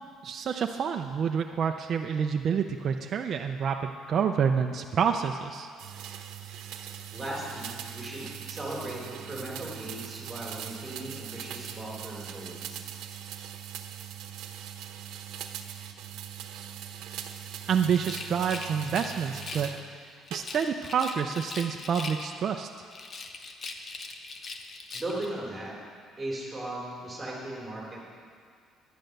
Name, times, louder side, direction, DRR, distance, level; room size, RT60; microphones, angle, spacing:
voice 1, 0.2-5.7 17.7-19.7 20.3-22.7, right 7 dB, 45° right, 4 dB, 0.5 m, -28 dB
sound 1, 5.8-19.8 20.3-20.9, right 10 dB, 80° right, 0.9 m, -41 dB
voice 2, 7.1-12.8 24.9-25.7 26.2-28.0, right 1 dB, 10° right, -4 dB, 3.7 m, -37 dB
Rattle, 17.9-19.8 20.3-22.5 22.9-25.3, left 3 dB, 35° left, 0.9 m, -41 dB
11.0 x 10.5 x 6.6 m, 2.2 s
cardioid pair, 140°, 0 cm